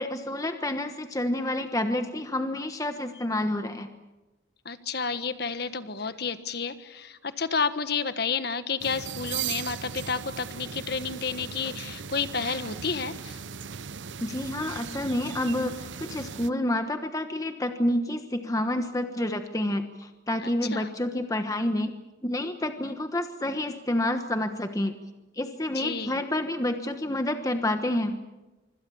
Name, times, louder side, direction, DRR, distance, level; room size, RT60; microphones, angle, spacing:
voice 1, 0.0-3.9 14.2-21.9 22.2-24.9 25.4-28.2, left 1 dB, 20° left, 7 dB, 1.2 m, -29 dB
voice 2, 4.6-13.4 20.4-20.9 25.7-26.2, left 5 dB, 55° left, 11 dB, 1.4 m, -31 dB
sound 1, 8.8-16.5, right 7 dB, 75° right, 0.8 m, -38 dB
25.5 x 25.5 x 7.1 m, 1.1 s
head